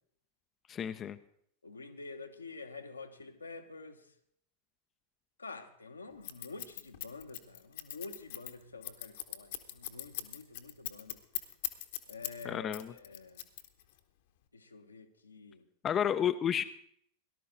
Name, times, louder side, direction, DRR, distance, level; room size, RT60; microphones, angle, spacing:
voice 1, 0.7-1.2 12.4-12.9 15.8-16.6, left 9 dB, 25° left, 0.5 m, -31 dB
voice 2, 1.6-4.1 5.4-11.2 12.1-13.4 14.5-15.6, left 3 dB, 80° left, 1.0 m, -48 dB
Scissors, 6.2-12.4 12.7-14.0, left 13 dB, 55° left, 1.0 m, -39 dB
18.0 x 12.0 x 3.8 m
figure-of-eight pair, 90°, 0 cm